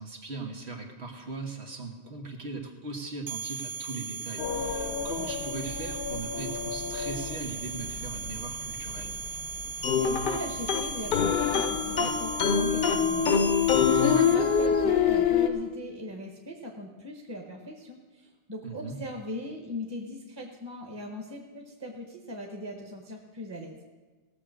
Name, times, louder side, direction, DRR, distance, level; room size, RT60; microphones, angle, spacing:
voice 1, 0.0-9.2 14.1-14.3 18.6-19.0, right 3 dB, 85° right, 2 dB, 1.9 m, -39 dB
sound 1, 3.3-14.7, right 5 dB, 45° right, 0.5 m, -38 dB
sound 2, 4.4-8.3 8.6-9.3 9.6-9.7 10.0-15.5, left 8 dB, 75° left, 1.1 m, -28 dB
sound 3, 9.8-14.9, left 5 dB, 55° left, 0.8 m, -27 dB
voice 2, 9.9-23.8, left 1 dB, 25° right, 1 dB, 1.2 m, -39 dB
17.5 x 6.8 x 6.4 m, 1.3 s
omnidirectional pair, 1.1 m